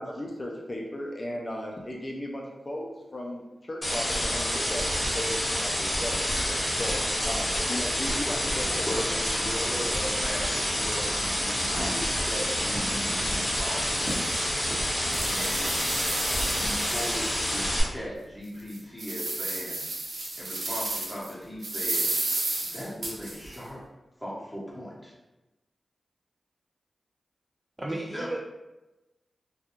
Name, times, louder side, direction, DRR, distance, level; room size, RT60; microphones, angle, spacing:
voice 1, 0.0-6.2 6.8-9.2, left 1 dB, 40° left, -2 dB, 0.4 m, -36 dB
sound 1, 3.8-17.8, equal, 20° left, 1.1 m, -28 dB
sound 2, 5.7-15.5, equal, 40° right, 0.9 m, -42 dB
voice 2, 8.9-13.9 15.1-16.0 16.4-19.8 20.4-22.1 22.6-23.8 24.2-25.1 28.1-28.3, equal, ahead, -6 dB, 1.0 m, -38 dB
sound 3, 13.5-13.6 14.1-14.2 14.7-17.6 18.0-18.1 18.6-21.3 21.6-23.6, right 2 dB, 75° right, 0.6 m, -32 dB
voice 3, 27.8-28.4, right 1 dB, 25° right, -2 dB, 0.4 m, -33 dB
2.3 x 2.2 x 2.9 m, 1.0 s
cardioid pair, 45°, 0 cm